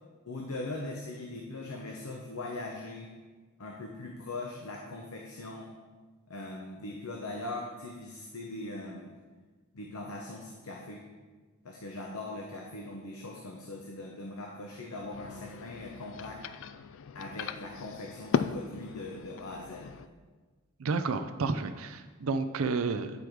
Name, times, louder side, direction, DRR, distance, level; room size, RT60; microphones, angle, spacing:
voice 1, 0.3-3.1 3.6-5.7 6.3-9.1 9.7-11.0 11.6-16.4 17.1-20.0, left 2 dB, 85° left, 0 dB, 0.8 m, -40 dB
sound 1, 15.0-20.1, left 6 dB, 60° left, 0.3 m, -37 dB
voice 2, 20.8-23.2, right 4 dB, 65° right, 10 dB, 0.5 m, -31 dB
9.6 x 4.9 x 4.6 m, 1.4 s
head